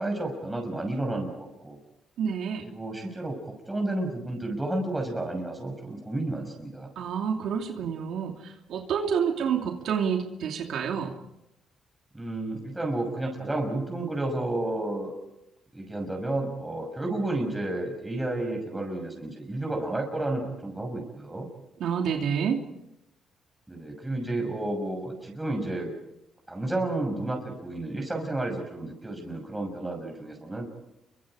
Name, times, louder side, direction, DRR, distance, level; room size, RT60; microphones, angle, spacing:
voice 1, 0.0-1.8 2.6-3.4 3.7-6.9 12.1-15.1 15.7-21.5 23.7-25.9 26.5-30.7, right 2 dB, 10° right, 1 dB, 6.0 m, -31 dB
voice 2, 2.2-2.6 7.0-11.1 21.8-22.6, right 7 dB, 75° right, 3 dB, 2.8 m, -28 dB
29.0 x 24.0 x 5.0 m, 0.87 s
cardioid pair, 90°, 0 cm